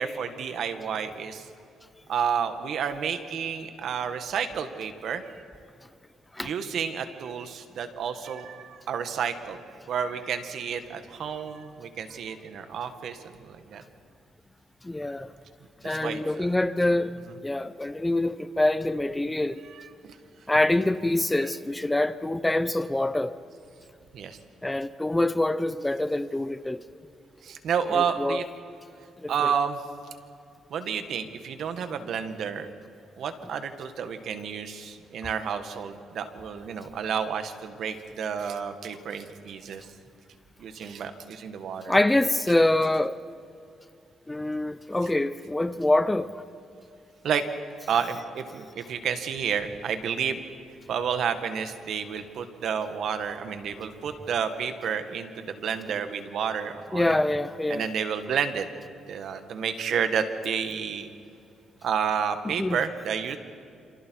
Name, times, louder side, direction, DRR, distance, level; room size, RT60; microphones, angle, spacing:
voice 1, 0.0-1.5 2.1-5.3 6.4-9.6 9.9-13.8 15.8-16.2 19.7-20.2 24.1-24.4 27.4-28.4 29.3-29.8 30.7-32.7 33.2-39.9 40.6-42.0 47.2-47.4 47.9-50.4 50.9-57.2 57.7-58.7 59.1-61.1 61.8-63.4, right 7 dB, 70° right, 1.9 m, -30 dB
voice 2, 14.8-15.3 15.8-17.1 17.4-19.6 20.5-23.3 24.6-26.8 27.9-28.5 29.2-29.5 41.9-43.2 44.3-46.4 56.9-57.9 62.4-62.8, left 1 dB, 10° left, 0.7 m, -25 dB
28.0 x 27.5 x 4.8 m
cardioid pair, 90°, 0 cm